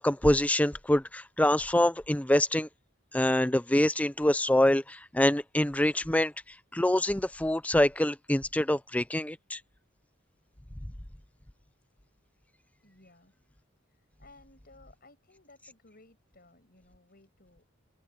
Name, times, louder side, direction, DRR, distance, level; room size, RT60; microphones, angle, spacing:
voice 1, 0.0-2.7 3.1-6.3 6.7-9.6, left 1 dB, 5° left, 0.6 m, -25 dB
voice 2, 12.8-13.3 14.2-17.6, left 2 dB, 50° left, 7.0 m, -58 dB
head